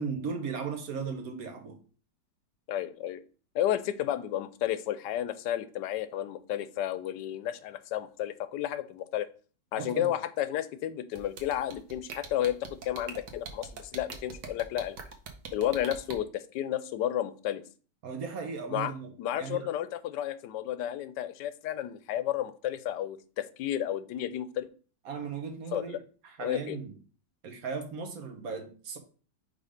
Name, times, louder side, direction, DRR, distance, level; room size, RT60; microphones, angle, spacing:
voice 1, 0.0-1.8 9.7-10.1 18.0-19.7 25.0-26.0 26.2-26.9 27.4-29.0, right 5 dB, 60° right, 1.3 m, -36 dB
voice 2, 2.7-3.2 3.5-9.3 9.7-15.0 15.5-17.6 18.7-18.9 19.2-24.7 25.7-26.0 26.4-26.8, left 11 dB, 90° left, 1.2 m, -32 dB
sound 1, 11.2-16.1, right 6 dB, 90° right, 1.6 m, -42 dB
5.1 x 3.9 x 5.0 m
omnidirectional pair, 1.8 m